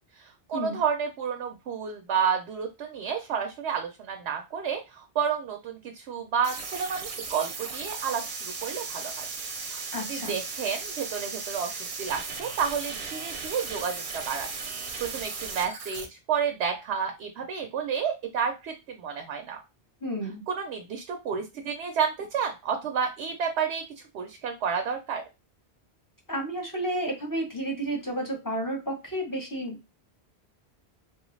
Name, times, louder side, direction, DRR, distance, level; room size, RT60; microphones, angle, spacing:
voice 1, 0.2-9.3 9.7-9.8 10.1-14.5 14.8-19.6 20.5-25.2, right 7 dB, 85° right, 4 dB, 0.8 m, -31 dB
sound 1, 6.4-16.1, right 4 dB, 55° right, 0.7 m, -36 dB
voice 2, 9.9-10.4 20.0-20.4 26.3-29.9, right 1 dB, 20° left, 0 dB, 0.9 m, -31 dB
3.0 x 2.3 x 3.1 m, 0.26 s
omnidirectional pair, 1.1 m